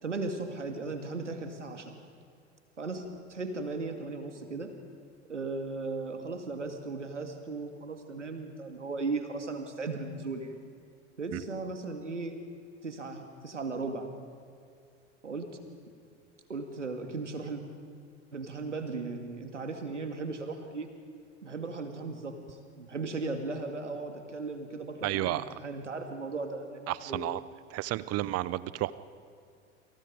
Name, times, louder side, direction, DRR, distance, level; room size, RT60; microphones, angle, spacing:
voice 1, 0.0-2.0 2.8-3.0 3.3-4.7 5.3-10.5 11.2-12.4 12.8-14.1 15.2-15.5 16.5-17.6 18.3-20.9 21.4-27.2, right 3 dB, 85° right, 6 dB, 2.2 m, -37 dB
voice 2, 25.0-25.4 26.9-27.4 27.7-28.9, right 16 dB, 45° right, 18 dB, 0.9 m, -31 dB
29.0 x 26.5 x 5.2 m, 2.3 s
figure-of-eight pair, 70°, 35 cm